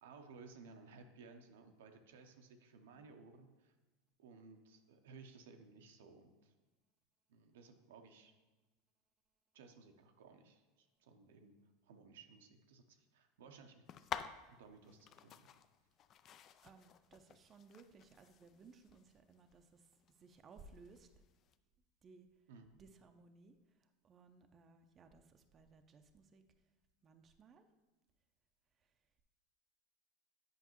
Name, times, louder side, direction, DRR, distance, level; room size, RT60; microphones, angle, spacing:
voice 1, 0.0-3.7 4.2-6.5 7.3-8.3 9.5-11.5 11.8-13.8 14.5-15.5 22.5-22.8, right 4 dB, 80° right, 5 dB, 0.6 m, -59 dB
sound 1, 13.9-21.5, left 9 dB, 45° left, 0.3 m, -51 dB
voice 2, 16.6-19.9 20.2-21.1 22.0-22.3 22.7-23.5 23.8-26.4 27.0-27.7, right 4 dB, 35° right, 7 dB, 0.5 m, -61 dB
8.0 x 5.3 x 3.0 m, 1.2 s
hypercardioid pair, 100°, 0 cm